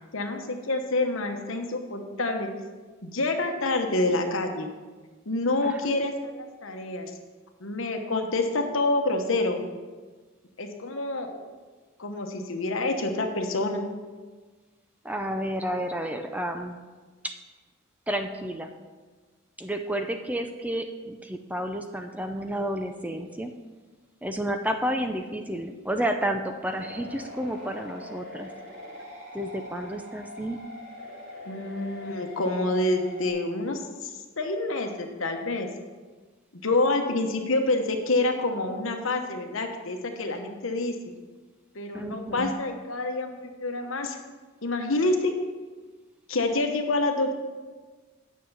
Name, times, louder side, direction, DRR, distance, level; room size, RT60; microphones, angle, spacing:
voice 1, 0.1-2.5 3.0-4.7 5.3-7.1 7.6-9.6 10.6-11.4 12.0-13.8 31.5-35.7 36.5-40.9 41.7-43.3 43.6-44.2 44.6-45.3 46.3-47.3, left 2 dB, 70° left, 4 dB, 1.1 m, -27 dB
voice 2, 15.0-16.8 18.1-18.7 19.6-23.5 24.2-28.5 29.3-30.6 41.9-42.5, right 1 dB, 5° right, 5 dB, 0.4 m, -31 dB
sound 1, 26.7-33.3, left 1 dB, 55° right, 2.4 m, -42 dB
9.4 x 6.5 x 5.7 m, 1.4 s
head